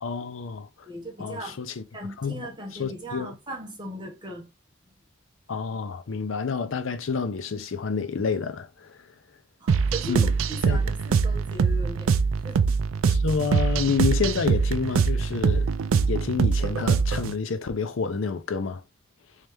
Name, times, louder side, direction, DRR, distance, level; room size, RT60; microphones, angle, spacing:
voice 1, 0.0-0.7 1.2-1.8 2.2-2.5 2.8-3.3 5.5-9.0 10.1-10.3 10.7-10.8 13.0-15.7 16.1-18.8, left 5 dB, 75° left, 0.5 m, -28 dB
voice 2, 0.8-1.6 1.9-4.5 9.6-12.6, right 1 dB, 25° right, 1.0 m, -38 dB
sound 1, 9.7-17.3, right 5 dB, 85° right, 0.4 m, -23 dB
3.2 x 3.2 x 3.4 m
head